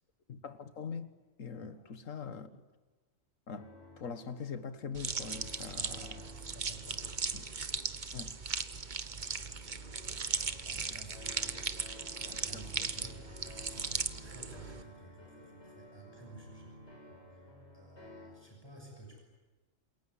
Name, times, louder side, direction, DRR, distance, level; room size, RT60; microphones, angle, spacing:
voice 1, 0.3-2.5 3.5-6.1 7.3-7.5 8.1-8.3 10.7-11.0 11.4-11.6 12.2-13.1, left 6 dB, 80° left, 1.8 m, -43 dB
sound 1, 3.6-18.3, left 1 dB, 60° left, 6.5 m, -54 dB
sound 2, 4.9-14.8, right 5 dB, 40° right, 1.2 m, -38 dB
voice 2, 5.4-7.0 9.1-11.8 12.4-16.7 17.3-17.5 17.7-19.2, right 2 dB, 20° left, 6.5 m, -54 dB
27.5 x 22.0 x 9.7 m
omnidirectional pair, 1.3 m